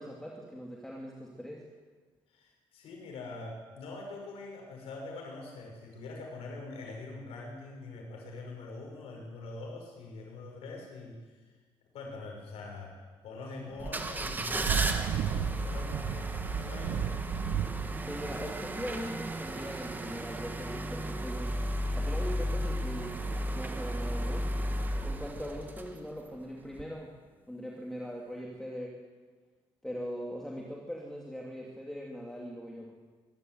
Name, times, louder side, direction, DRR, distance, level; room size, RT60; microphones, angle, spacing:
voice 1, 0.0-1.6 18.1-21.6 21.9-23.1 23.5-24.5 25.0-27.1 27.5-28.9 29.8-32.9, equal, 5° left, -2 dB, 2.7 m, -40 dB
voice 2, 2.3-11.2 11.9-12.9 13.2-16.3 16.6-17.1, left 3 dB, 75° left, 0 dB, 6.2 m, -44 dB
Thunder / Rain, 13.7-23.2, right 11 dB, 75° right, 0.9 m, -37 dB
sound 1, 13.8-26.3 26.7-26.8, right 1 dB, 20° right, 1.7 m, -34 dB
24.5 x 12.5 x 9.3 m, 1.4 s
cardioid pair, 130°, 10 cm